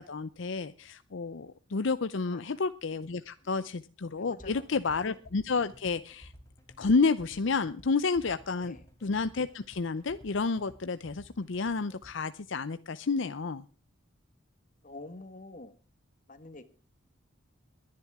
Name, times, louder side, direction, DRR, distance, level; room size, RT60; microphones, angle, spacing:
voice 1, 0.0-6.3 6.8-13.6, left 4 dB, 65° left, 12 dB, 0.6 m, -30 dB
sound 1, 4.4-12.1, equal, 15° left, 4.3 m, -54 dB
voice 2, 14.8-15.7 16.3-16.6, left 2 dB, 40° left, 10 dB, 1.5 m, -46 dB
22.0 x 10.5 x 3.6 m, 0.36 s
head